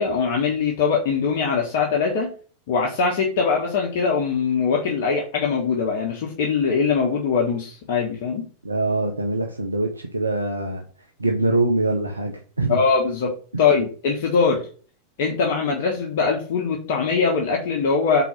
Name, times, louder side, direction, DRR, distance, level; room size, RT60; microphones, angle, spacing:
voice 1, 0.0-2.3 2.7-8.5 12.7-14.7 15.2-18.2, left 5 dB, 50° left, -1 dB, 1.2 m, -22 dB
voice 2, 8.6-10.8 11.2-12.8, right 2 dB, 80° right, 3 dB, 0.7 m, -23 dB
4.5 x 4.0 x 5.7 m, 0.41 s
figure-of-eight pair, 90°, 0 cm